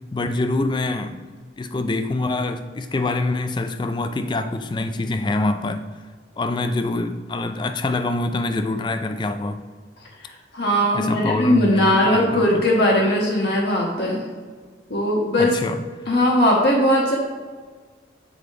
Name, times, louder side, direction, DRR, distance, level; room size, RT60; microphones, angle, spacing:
voice 1, 0.1-1.2 1.6-5.8 6.4-9.6 10.9-12.6 15.4-15.8, left 2 dB, 25° left, 9 dB, 0.3 m, -25 dB
voice 2, 10.5-14.2 14.9-15.5 16.1-17.2, left 1 dB, 65° left, -2 dB, 1.1 m, -19 dB
7.0 x 4.7 x 3.2 m, 1.5 s
head